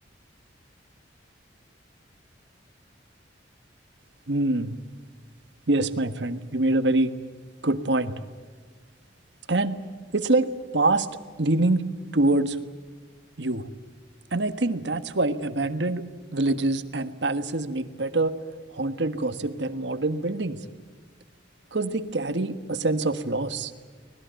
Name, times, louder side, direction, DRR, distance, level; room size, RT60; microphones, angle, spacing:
voice 1, 4.3-4.7 5.7-7.1 7.6-8.1 9.5-9.8 10.1-11.1 11.4-11.8 12.1-12.6 13.4-13.7 14.3-16.1 16.3-18.4 18.7-20.6 21.7-23.7, right 2 dB, 70° right, 10 dB, 1.5 m, -25 dB
25.5 x 20.0 x 9.2 m, 1.4 s
head